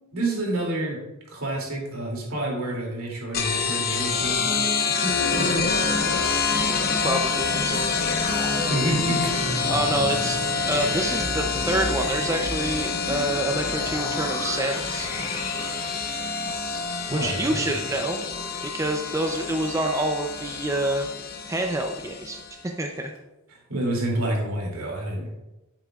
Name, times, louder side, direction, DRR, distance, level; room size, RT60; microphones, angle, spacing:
voice 1, 0.1-1.0 1.3-4.6 5.0-5.1 5.4-5.6 8.7-9.7 17.1-17.8 23.5-25.4, right 1 dB, 75° right, -1 dB, 2.6 m, -28 dB
sound 1, 3.3-22.5, left 4 dB, 45° left, 0.9 m, -27 dB
voice 2, 7.0-8.0 9.7-15.1 17.1-18.2 18.6-21.1 21.5-22.4 22.8-23.1, right 1 dB, 15° right, 3 dB, 0.5 m, -27 dB
sound 2, 7.7-18.9 19.3-19.4, left 2 dB, 80° left, 1.8 m, -36 dB
10.0 x 7.8 x 2.4 m, 1.0 s
head